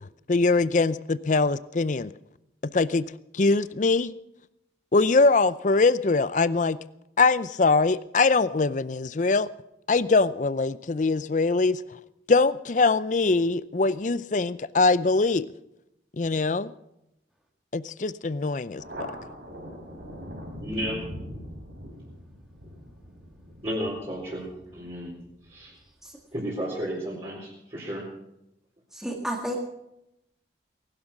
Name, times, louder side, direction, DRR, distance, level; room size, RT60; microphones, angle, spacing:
voice 1, 0.3-2.1 2.7-3.1 3.3-4.1 4.9-6.8 7.2-9.5 9.9-11.8 12.3-15.5 16.2-16.7 17.7-19.1, left 3 dB, 45° left, 17 dB, 0.5 m, -22 dB
Thunder, 18.8-25.8, equal, 75° right, 4.3 m, -42 dB
voice 2, 20.6-21.0 23.6-24.5 24.7-25.1 25.5-25.7 26.3-28.0, equal, 30° right, -7 dB, 4.2 m, -32 dB
voice 3, 28.9-29.6, equal, 5° right, 1 dB, 2.0 m, -31 dB
19.5 x 12.0 x 6.0 m, 0.85 s
head